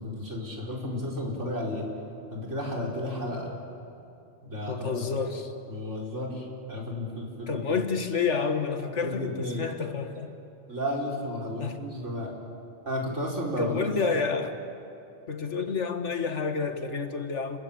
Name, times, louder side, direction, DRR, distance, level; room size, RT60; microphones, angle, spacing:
voice 1, 0.0-1.9 2.3-3.5 4.4-5.0 5.7-7.6 9.0-9.6 10.7-12.3 12.8-14.1, left 1 dB, 75° right, -2 dB, 5.1 m, -33 dB
voice 2, 4.7-5.5 7.5-10.4 11.6-11.8 13.6-14.5 15.3-17.6, left 5 dB, 70° left, 7 dB, 2.0 m, -29 dB
30.0 x 21.0 x 8.9 m, 2.6 s
omnidirectional pair, 1.2 m